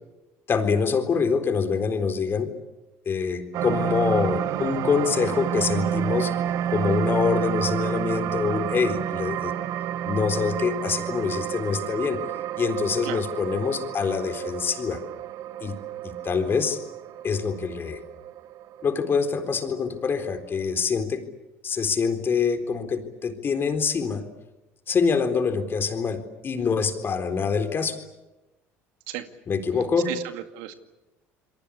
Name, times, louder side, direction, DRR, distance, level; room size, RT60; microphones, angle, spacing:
voice 1, 0.5-2.5 3.1-6.3 6.7-9.6 10.0-12.2 12.6-15.0 15.6-15.8 16.0-16.8 17.2-18.0 18.8-21.3 21.6-24.3 24.9-28.0 29.5-30.1, left 5 dB, 35° left, 7 dB, 3.9 m, -25 dB
sound 1, 3.5-20.0 20.4-20.6, right 10 dB, 65° right, 1.3 m, -30 dB
voice 2, 30.1-30.8, right 13 dB, 80° right, 7 dB, 2.2 m, -34 dB
28.0 x 22.5 x 8.5 m, 1.0 s
supercardioid pair, 95°, 6 cm